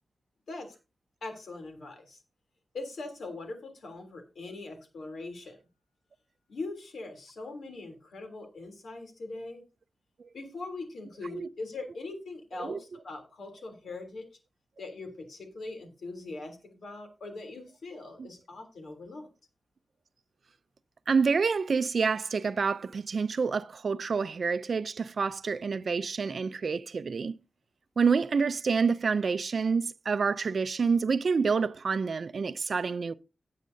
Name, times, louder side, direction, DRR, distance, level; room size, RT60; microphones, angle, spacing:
voice 1, 1.2-2.2 2.7-5.6 6.5-9.6 10.3-14.3 14.8-19.3, left 3 dB, 85° left, 3.2 m, -41 dB
voice 2, 21.1-27.3 28.0-33.1, right 5 dB, 60° right, 0.5 m, -28 dB
17.5 x 7.4 x 2.7 m
wide cardioid pair, 135°, 0 cm